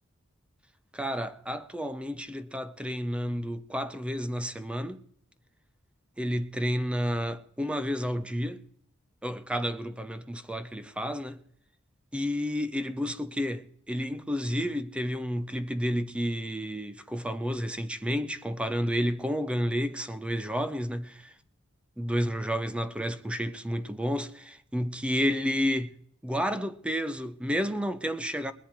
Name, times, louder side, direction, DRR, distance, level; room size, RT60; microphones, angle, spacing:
voice 1, 0.9-5.0 6.2-8.6 9.2-11.4 12.1-21.3 22.0-26.0 26.2-28.5, equal, 5° right, 0.5 m, -31 dB
20.0 x 10.0 x 4.5 m
head